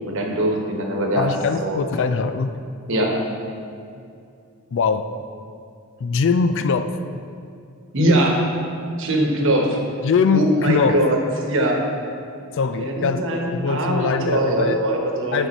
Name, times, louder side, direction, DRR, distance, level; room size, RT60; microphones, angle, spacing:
voice 1, 0.1-1.3 1.6-1.8 2.9-3.1 7.9-8.4 9.0-9.8 10.3-11.2 11.5-11.8 12.8-15.5, right 1 dB, 60° right, 1 dB, 1.1 m, -21 dB
voice 2, 1.1-2.6 4.7-5.1 6.0-6.9 10.0-11.0 12.5-14.8 15.3-15.5, left 5 dB, 55° left, 10 dB, 0.4 m, -22 dB
9.0 x 5.3 x 4.1 m, 2.4 s
head